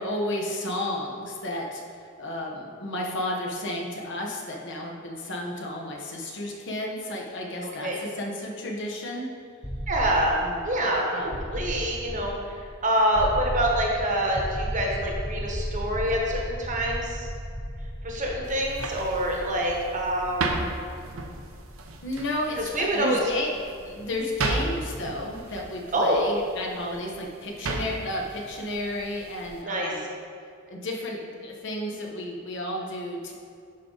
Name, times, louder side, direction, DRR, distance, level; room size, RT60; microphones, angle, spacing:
voice 1, 0.0-9.3 10.4-10.9 11.1-11.7 22.0-23.5 23.8-30.0 30.7-33.3, left 1 dB, 60° left, -1 dB, 1.1 m, -32 dB
sound 1, 9.6-25.5, equal, 10° left, 0.6 m, -36 dB
voice 2, 9.9-10.4 10.6-12.3 12.8-17.3 18.0-20.6 22.7-23.2 25.9-26.2 29.6-29.9, right 1 dB, 40° right, -1 dB, 1.1 m, -26 dB
sound 2, 18.4-29.6, right 2 dB, 75° right, 0.7 m, -35 dB
11.0 x 3.9 x 3.9 m, 2.3 s
head